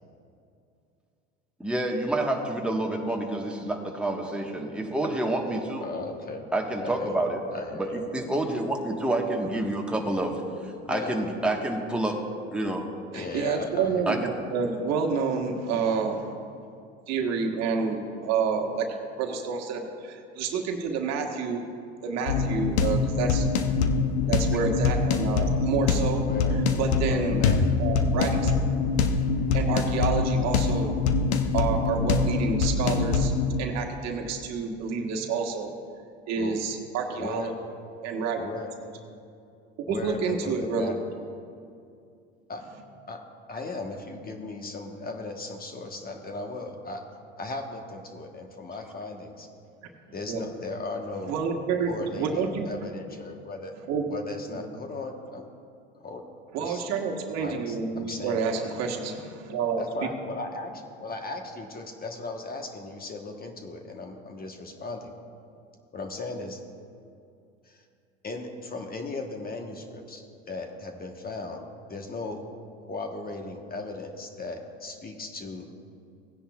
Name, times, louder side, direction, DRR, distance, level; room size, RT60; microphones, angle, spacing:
voice 1, 1.6-5.9 6.5-7.4 7.7-10.4 10.9-12.2 12.5-12.9 14.1-14.3, right 1 dB, 5° right, 0 dB, 1.4 m, -28 dB
voice 2, 5.8-6.5 6.8-7.2 7.5-8.0 10.9-11.3 13.1-14.1 26.3-26.6 27.1-27.8 36.4-36.6 37.2-37.6 38.4-38.7 39.9-41.0 42.5-42.6 43.1-43.2 43.5-47.1 47.4-49.5 50.1-51.3 51.9-53.8 54.1-55.5 56.0-56.2 56.6-56.8 57.3-58.5 59.8-65.1 65.9-66.6 67.7-67.8 68.2-71.6 71.9-72.4 72.9-75.8, left 3 dB, 30° left, 4 dB, 1.2 m, -37 dB
voice 3, 13.1-16.3 17.1-18.9 19.2-21.6 22.0-23.5 24.3-26.2 26.8-27.4 27.8-28.5 29.5-31.0 31.5-33.3 33.6-35.7 36.3-37.5 38.0-38.4 39.9-40.9 50.3-50.5 51.3-51.9 52.1-52.7 53.9-54.0 54.5-54.7 56.5-59.8, right 5 dB, 55° right, 2 dB, 1.4 m, -29 dB
sound 1, 22.3-33.6, left 4 dB, 75° left, 0.8 m, -24 dB
17.0 x 10.0 x 2.4 m, 2.4 s
hypercardioid pair, 80°, 32 cm